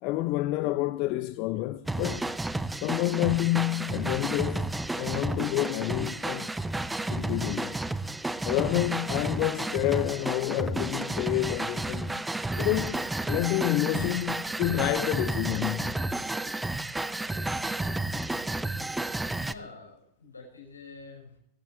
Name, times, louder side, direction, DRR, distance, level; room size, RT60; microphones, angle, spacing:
voice 1, 0.0-2.3 2.8-6.5 7.1-7.9 8.4-12.3 12.6-16.0, left 17 dB, 40° left, 0.6 m, -29 dB
sound 1, 1.9-19.5, right 2 dB, 5° right, 0.7 m, -32 dB
voice 2, 19.4-21.4, left 4 dB, 75° left, 5.9 m, -48 dB
18.5 x 16.0 x 3.4 m
figure-of-eight pair, 90°, 0 cm